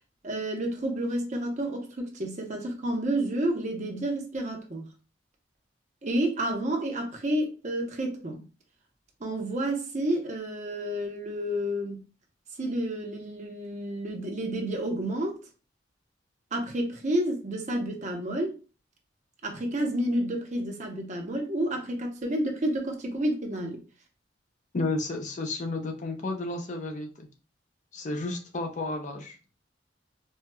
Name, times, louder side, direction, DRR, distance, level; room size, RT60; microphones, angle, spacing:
voice 1, 0.2-4.9 6.0-8.4 9.2-12.0 12.6-15.4 16.5-18.6 19.4-23.8, right 1 dB, 40° right, 0.8 m, -30 dB
voice 2, 24.7-27.3 27.9-29.4, left 2 dB, 40° left, 0.5 m, -32 dB
4.4 x 2.3 x 2.2 m
head